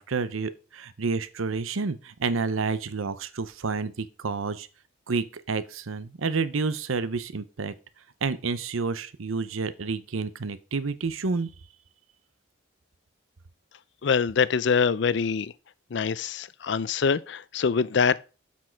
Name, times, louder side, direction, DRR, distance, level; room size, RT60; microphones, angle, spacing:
voice 1, 0.0-4.7 5.1-7.7 8.2-11.5, right 4 dB, 85° right, 0.7 m, -29 dB
voice 2, 14.0-15.5 15.9-18.2, left 5 dB, 60° left, 0.4 m, -24 dB
7.4 x 6.2 x 4.5 m
head